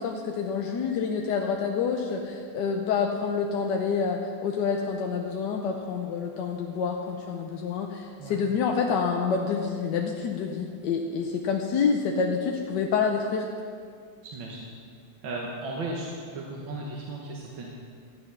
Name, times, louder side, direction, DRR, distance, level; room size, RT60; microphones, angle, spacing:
voice 1, 0.0-13.5, left 5 dB, 65° left, 1 dB, 1.2 m, -27 dB
voice 2, 14.2-14.7 15.2-16.1 16.3-17.7, right 2 dB, 65° right, -2 dB, 1.9 m, -35 dB
13.0 x 8.7 x 5.8 m, 2.2 s
omnidirectional pair, 2.3 m